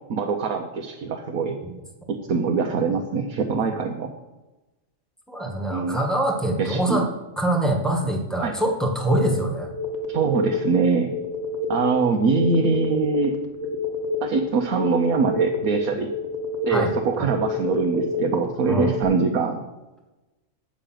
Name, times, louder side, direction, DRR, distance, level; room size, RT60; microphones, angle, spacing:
voice 1, 0.1-1.5 2.1-4.1 5.7-6.0 6.6-7.0 8.4-8.5 10.1-11.1 11.7-13.3 14.2-16.1 16.7-19.6, right 5 dB, 85° right, 2 dB, 1.3 m, -23 dB
voice 2, 5.3-7.1 7.4-9.7 16.7-16.9 17.2-17.3 18.7-18.9, right 1 dB, ahead, 1 dB, 1.3 m, -24 dB
sound 1, 9.1-19.0, left 3 dB, 15° right, 1.1 m, -29 dB
8.9 x 5.2 x 7.4 m, 1.0 s
omnidirectional pair, 1.4 m